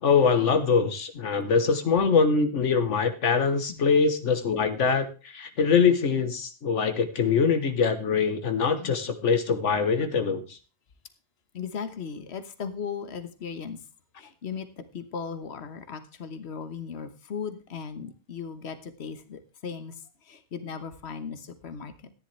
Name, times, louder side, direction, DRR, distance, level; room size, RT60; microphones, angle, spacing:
voice 1, 0.0-10.6, left 5 dB, 85° left, 8 dB, 1.4 m, -23 dB
voice 2, 11.5-13.8 14.2-20.0 20.2-22.1, left 6 dB, 65° left, 10 dB, 1.5 m, -37 dB
14.0 x 10.5 x 3.3 m, 0.34 s
omnidirectional pair, 1.2 m